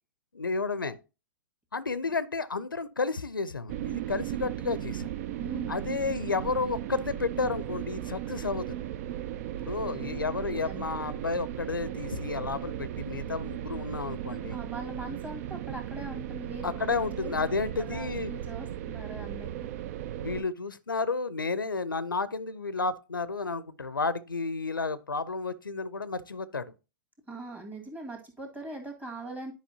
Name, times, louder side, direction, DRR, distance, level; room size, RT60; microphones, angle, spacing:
voice 1, 0.3-1.0 1.7-5.1 5.7-8.8 9.6-14.6 16.6-18.3 20.2-26.7, left 4 dB, 90° left, 0.5 m, -31 dB
sound 1, 3.7-20.4, right 12 dB, 45° right, 0.4 m, -36 dB
voice 2, 5.4-5.7 9.8-11.0 14.5-16.8 17.2-17.3 17.8-19.8 27.3-29.5, right 2 dB, 15° right, 1.9 m, -41 dB
10.0 x 5.2 x 2.8 m
figure-of-eight pair, 110°, 11 cm